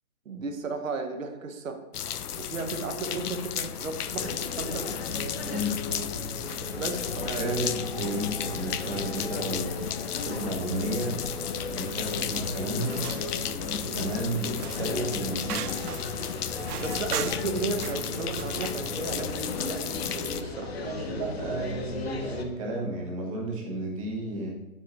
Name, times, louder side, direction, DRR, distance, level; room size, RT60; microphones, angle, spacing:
voice 1, 0.2-1.8 2.4-4.9 6.7-7.7 16.8-20.7, right 3 dB, 60° right, 6 dB, 1.1 m, -34 dB
sound 1, 1.9-20.4, left 9 dB, 85° left, 0.6 m, -34 dB
sound 2, 4.2-22.5, left 3 dB, 45° left, 0.8 m, -36 dB
voice 2, 5.4-5.8 7.4-9.7 10.2-11.2 11.6-13.0 13.8-15.7 20.8-24.5, right 1 dB, 25° right, -1 dB, 1.1 m, -32 dB
sound 3, 12.8-18.9, right 9 dB, 90° right, 0.6 m, -39 dB
9.2 x 4.5 x 3.1 m, 0.98 s
hypercardioid pair, 165°, 45 cm